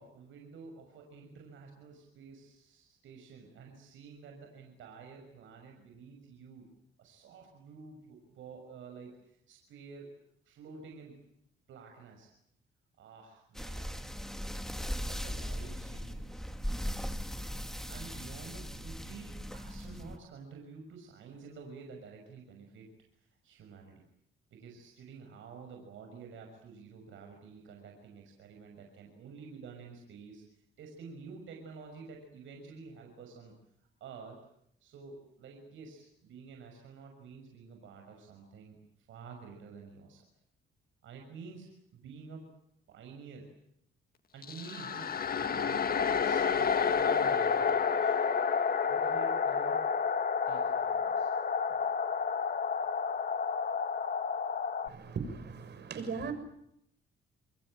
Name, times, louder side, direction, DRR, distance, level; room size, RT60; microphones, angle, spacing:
voice 1, 0.0-6.7 7.0-11.2 11.7-12.3 13.0-14.0 15.1-16.9 17.9-22.9 23.4-24.0 24.5-30.4 30.8-33.5 34.0-34.4 34.8-38.8 39.1-40.2 41.0-42.5 42.9-43.5 44.3-48.2 48.9-49.9 50.5-51.3, right 5 dB, 80° right, 2 dB, 6.3 m, -50 dB
sound 1, 13.5-20.2, equal, ahead, 2.5 m, -38 dB
sound 2, 44.4-54.9, left 6 dB, 50° left, 1.8 m, -30 dB
voice 2, 54.8-56.3, right 5 dB, 60° right, 9 dB, 6.6 m, -38 dB
28.5 x 22.0 x 8.9 m, 0.76 s
cardioid pair, 90°, 20 cm